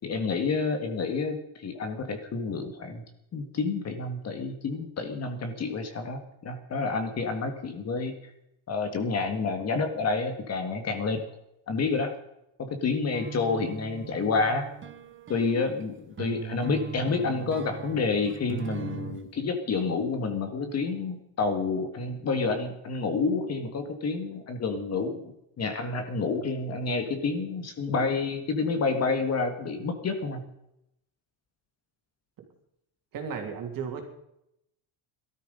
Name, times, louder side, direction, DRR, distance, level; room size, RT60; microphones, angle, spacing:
voice 1, 0.0-3.0 3.3-8.3 8.7-11.2 11.7-12.1 12.6-14.7 15.3-30.4, left 4 dB, 30° left, 7 dB, 1.7 m, -29 dB
sound 1, 13.1-19.3, right 8 dB, 25° right, 1.1 m, -39 dB
voice 2, 33.1-34.0, right 6 dB, 40° right, 3 dB, 3.2 m, -34 dB
18.5 x 13.0 x 5.3 m, 0.80 s
cardioid pair, 180°, 49 cm